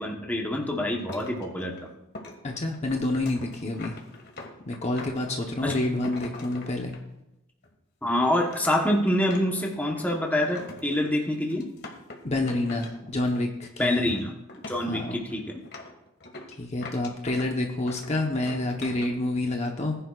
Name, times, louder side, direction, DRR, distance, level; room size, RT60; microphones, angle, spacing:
voice 1, 0.0-1.9 5.6-5.8 8.0-11.7 13.8-14.3 14.7-15.6, left 1 dB, 10° left, 0 dB, 1.1 m, -26 dB
sound 1, 1.0-7.0 7.6-7.7 8.2-13.6 13.9-14.2 14.5-17.5 17.9-19.1, left 2 dB, 55° left, 1.8 m, -43 dB
voice 2, 2.4-4.0 4.7-6.9 12.2-14.1 14.8-15.2 16.6-20.0, left 2 dB, 35° left, 2 dB, 1.0 m, -28 dB
20.0 x 10.5 x 2.5 m, 0.89 s
head